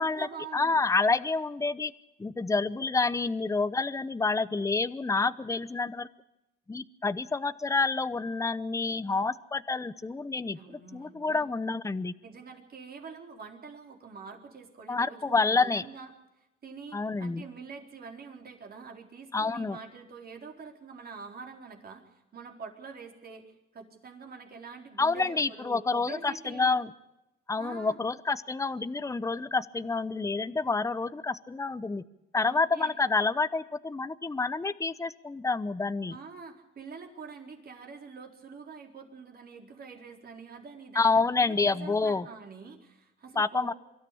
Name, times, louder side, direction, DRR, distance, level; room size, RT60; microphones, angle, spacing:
voice 1, 0.0-0.8 10.5-11.5 12.2-16.1 16.6-26.8 27.6-28.0 30.6-30.7 32.4-32.9 36.1-43.7, right 5 dB, 50° right, 2 dB, 4.2 m, -46 dB
voice 2, 0.5-1.9 2.2-6.1 6.7-12.1 14.9-15.8 16.9-17.4 19.3-19.8 25.0-26.9 27.5-32.0 32.3-36.2 40.9-42.2 43.4-43.7, left 3 dB, 15° left, 14 dB, 0.8 m, -28 dB
24.0 x 13.0 x 8.5 m, 0.93 s
cardioid pair, 90°, 20 cm